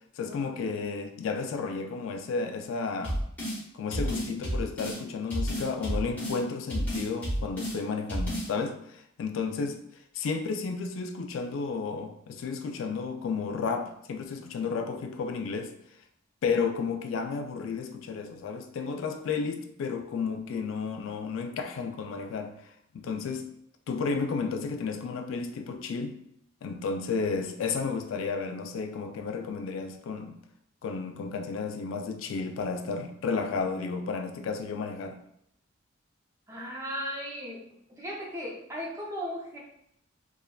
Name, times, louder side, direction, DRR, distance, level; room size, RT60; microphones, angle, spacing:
voice 1, 0.2-3.2 3.7-9.8 10.1-15.7 16.4-22.5 22.9-23.5 23.9-26.2 26.6-30.4 30.8-35.2, left 5 dB, 75° left, 6 dB, 0.3 m, -32 dB
sound 1, 3.0-3.6 3.9-5.0 5.3-6.4 6.7-7.8 8.1-8.5, equal, 10° left, 0.9 m, -30 dB
voice 2, 36.5-37.6 37.9-39.6, equal, 15° right, -3 dB, 0.6 m, -36 dB
3.5 x 2.2 x 2.2 m, 0.73 s
head